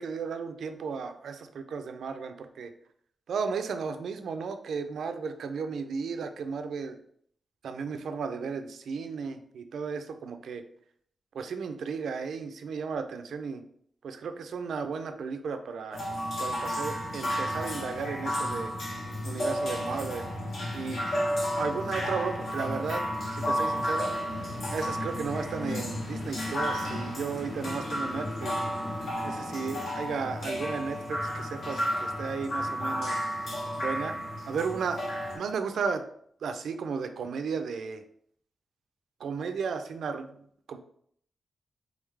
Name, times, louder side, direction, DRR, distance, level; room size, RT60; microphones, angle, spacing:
voice 1, 0.0-2.7 3.3-7.0 7.6-10.6 11.3-13.6 14.0-16.0 16.4-18.7 19.2-20.3 20.7-21.0 21.6-23.0 23.3-24.1 24.7-28.6 29.0-33.2 33.8-34.2 34.5-35.1 35.3-36.0 36.4-38.0 39.2-40.8, right 5 dB, 85° right, 8 dB, 0.4 m, -34 dB
sound 1, 15.9-35.4, equal, 65° left, 1.2 m, -32 dB
3.8 x 3.5 x 3.2 m, 0.65 s
wide cardioid pair, 125°, 0 cm